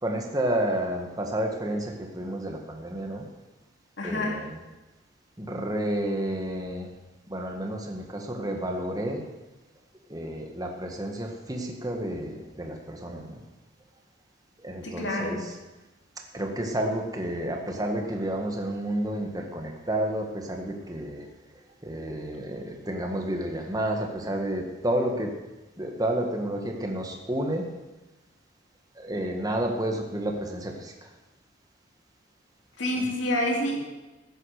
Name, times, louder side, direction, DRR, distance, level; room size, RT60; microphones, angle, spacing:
voice 1, 0.0-3.3 4.0-4.6 5.4-6.9 7.3-9.2 10.1-13.3 14.6-15.4 16.3-21.3 21.8-25.3 25.8-27.7 29.0-30.9 33.0-33.1, right 1 dB, 20° right, 2 dB, 1.7 m, -30 dB
voice 2, 4.0-4.5 14.8-15.5 32.8-33.8, left 1 dB, 65° left, 0 dB, 2.9 m, -28 dB
14.5 x 9.9 x 6.6 m, 1.1 s
head